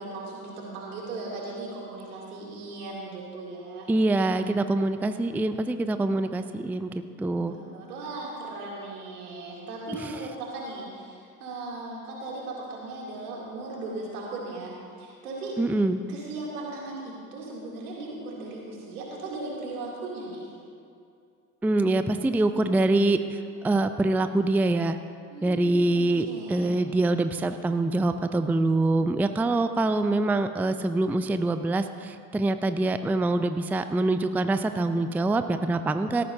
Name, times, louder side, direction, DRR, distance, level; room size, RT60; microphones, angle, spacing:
voice 1, 0.0-3.9 7.2-15.6 16.1-20.5 25.3-26.8, right 2 dB, 75° right, -4 dB, 3.0 m, -37 dB
voice 2, 3.9-7.5 15.6-16.0 21.6-25.0 25.4-36.2, right 2 dB, 5° right, 9 dB, 0.4 m, -25 dB
18.0 x 13.5 x 2.8 m, 2.4 s
figure-of-eight pair, 55°, 45 cm